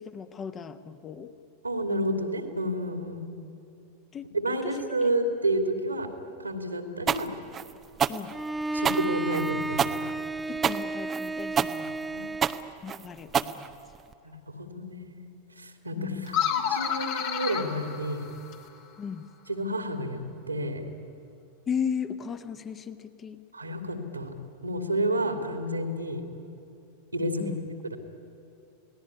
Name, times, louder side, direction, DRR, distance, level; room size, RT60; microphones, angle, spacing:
voice 1, 0.0-1.3 4.1-4.3 4.6-4.7 8.0-8.3 10.5-11.9 12.8-13.7 16.0-16.4 19.0-19.3 21.7-23.4 27.4-27.6, left 7 dB, 25° left, 9 dB, 1.5 m, -36 dB
voice 2, 1.6-3.3 4.3-6.1 6.4-7.3 8.7-10.0 11.8-12.3 14.2-15.3 15.6-18.3 19.5-20.8 23.5-24.3 24.6-26.2 27.1-27.6 27.9-28.0, right 1 dB, 85° right, 5 dB, 2.9 m, -30 dB
sound 1, 7.1-14.1, right 8 dB, 25° right, 0.8 m, -28 dB
Bowed string instrument, 8.3-12.7, right 2 dB, 5° right, 0.5 m, -32 dB
sound 2, 16.3-18.8, left 8 dB, 50° left, 2.6 m, -30 dB
28.5 x 19.5 x 9.9 m, 2.8 s
figure-of-eight pair, 90°, 0 cm